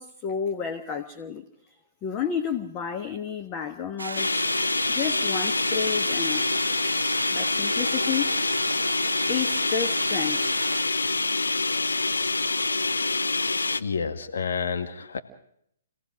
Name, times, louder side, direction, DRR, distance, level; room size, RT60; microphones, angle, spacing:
voice 1, 0.0-1.5 2.0-4.4 4.9-6.5 7.3-8.3 9.3-10.5 10.9-11.0 12.4-12.5, left 7 dB, 25° left, 6 dB, 1.3 m, -31 dB
sound 1, 4.0-10.8, right 2 dB, 80° right, 0.8 m, -33 dB
sound 2, 4.2-13.8, left 3 dB, 75° left, 0.8 m, -26 dB
voice 2, 13.8-15.2, left 6 dB, 60° left, 6 dB, 2.0 m, -29 dB
26.5 x 18.0 x 6.3 m, 0.72 s
figure-of-eight pair, 125°, 0 cm